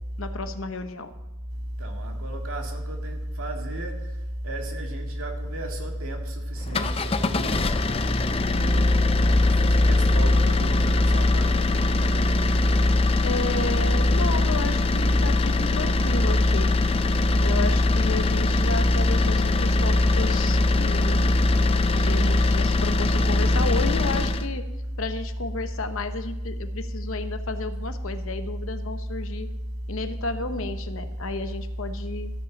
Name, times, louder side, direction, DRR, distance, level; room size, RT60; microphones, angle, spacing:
voice 1, 0.2-1.1 13.2-16.7 17.4-21.7 22.0-24.7 25.0-29.5 29.9-32.3, left 3 dB, 70° left, 9 dB, 0.9 m, -32 dB
voice 2, 1.5-4.2 4.4-7.8 8.4-9.1 9.5-11.7, right 1 dB, 75° right, 2 dB, 2.1 m, -32 dB
sound 1, 6.6-24.5, left 2 dB, 25° left, 0.4 m, -21 dB
14.0 x 6.2 x 7.1 m, 0.97 s
head